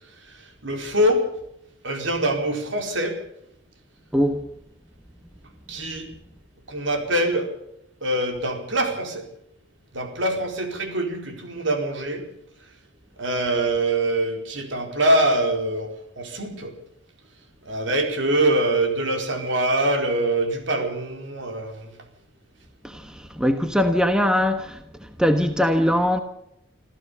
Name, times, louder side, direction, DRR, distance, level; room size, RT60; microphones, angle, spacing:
voice 1, 0.3-1.3 1.8-3.2 5.7-6.1 6.7-7.5 8.0-9.2 9.9-12.3 13.2-16.7 17.6-22.0, right 1 dB, 70° right, 4.3 m, -24 dB
voice 2, 22.8-26.2, equal, 5° right, 1.2 m, -21 dB
26.0 x 15.0 x 7.0 m
head